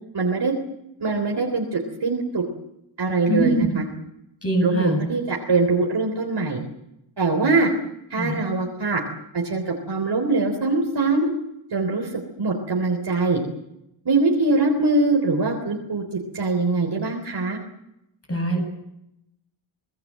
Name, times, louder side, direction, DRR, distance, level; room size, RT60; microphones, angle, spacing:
voice 1, 0.1-0.5 1.0-2.4 3.0-3.9 4.6-6.6 7.2-7.7 8.1-9.0 9.3-11.3 11.7-12.1 12.4-13.4 14.1-16.0 16.3-17.6, right 3 dB, 55° right, 2 dB, 3.7 m, -22 dB
voice 2, 3.3-3.7 4.4-5.0 8.2-8.3 18.3-18.6, right 1 dB, 30° left, 3 dB, 8.0 m, -22 dB
26.0 x 19.5 x 7.6 m, 0.85 s
wide cardioid pair, 120°, 48 cm